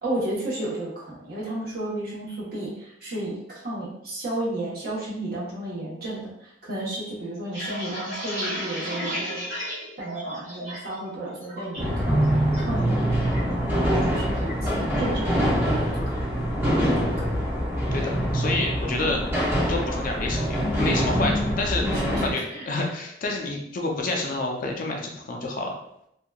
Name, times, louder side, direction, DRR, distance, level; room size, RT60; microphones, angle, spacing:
voice 1, 0.0-9.4 10.0-17.1 21.8-22.7, right 1 dB, 55° right, -6 dB, 1.0 m, -33 dB
sound 1, 7.3-11.0 11.3-11.8 12.2-12.6 12.9-14.1 14.5-14.7 15.1-15.5, equal, 80° right, 1.5 m, -34 dB
sound 2, 11.8-22.3, equal, 10° right, 0.7 m, -24 dB
voice 2, 17.9-19.3 19.7-25.7, left 2 dB, 45° left, 1 dB, 0.4 m, -29 dB
2.7 x 2.3 x 2.3 m, 0.76 s
head